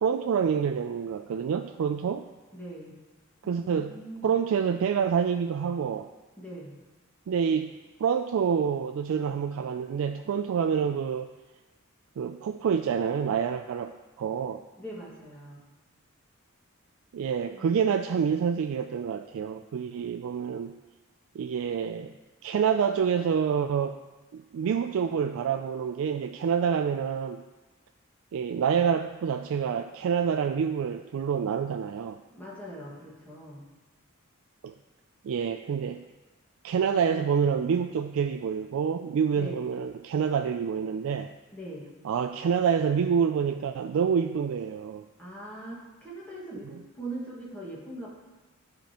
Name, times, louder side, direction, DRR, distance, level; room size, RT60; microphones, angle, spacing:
voice 1, 0.0-2.3 3.4-4.0 4.2-6.1 7.3-7.7 8.0-11.3 12.2-14.6 17.1-20.8 21.3-22.1 22.4-24.0 24.3-27.4 28.3-32.2 34.6-34.7 35.2-36.0 36.6-41.3 42.0-45.1, right 7 dB, 70° right, 6 dB, 0.3 m, -27 dB
voice 2, 2.5-3.0 3.4-4.3 6.4-6.8 14.8-15.7 32.3-33.7 39.3-39.6 41.5-41.9 45.2-48.1, right 1 dB, 10° left, -6 dB, 1.8 m, -41 dB
12.5 x 5.0 x 3.0 m, 1.2 s
head